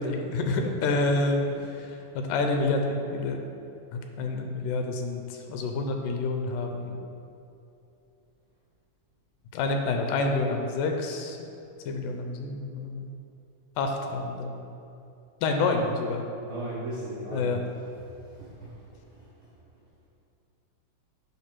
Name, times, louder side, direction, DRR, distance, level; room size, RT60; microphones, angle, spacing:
voice 1, 0.0-1.9 2.2-3.4 3.9-7.0 9.5-11.4 11.9-13.1 13.8-14.6 15.4-16.3 17.3-17.6, left 3 dB, 80° left, 4 dB, 2.1 m, -28 dB
voice 2, 16.4-17.6 17.9-19.5, right 1 dB, 85° right, -9 dB, 0.7 m, -39 dB
8.4 x 3.4 x 6.0 m, 2.7 s
omnidirectional pair, 3.7 m